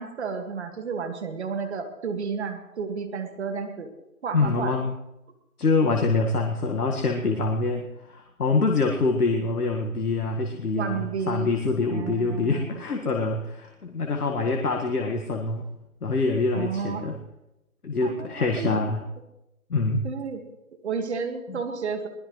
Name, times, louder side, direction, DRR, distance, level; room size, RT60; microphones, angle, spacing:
voice 1, 0.0-3.9 4.2-4.8 10.8-11.5 11.8-12.8 16.5-17.1 18.0-18.8 20.0-20.4 20.8-22.1, right 5 dB, 45° right, 6 dB, 2.0 m, -31 dB
voice 2, 4.3-4.9 5.6-15.7 16.0-17.2 17.8-19.0 19.7-20.1 21.5-21.6, left 3 dB, 80° left, 2 dB, 1.8 m, -25 dB
21.5 x 19.5 x 3.2 m, 0.93 s
figure-of-eight pair, 150°, 45 cm